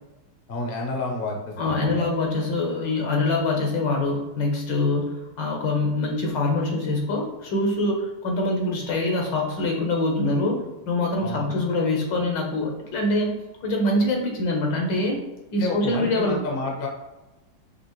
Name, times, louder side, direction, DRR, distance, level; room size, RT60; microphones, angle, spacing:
voice 1, 0.5-2.0 11.2-11.5 15.6-16.9, left 2 dB, 45° left, 1 dB, 0.7 m, -30 dB
voice 2, 1.6-10.6 10.9-15.2 15.5-16.4, left 2 dB, 75° left, 1 dB, 1.6 m, -24 dB
5.8 x 2.5 x 3.0 m, 1.1 s
omnidirectional pair, 2.0 m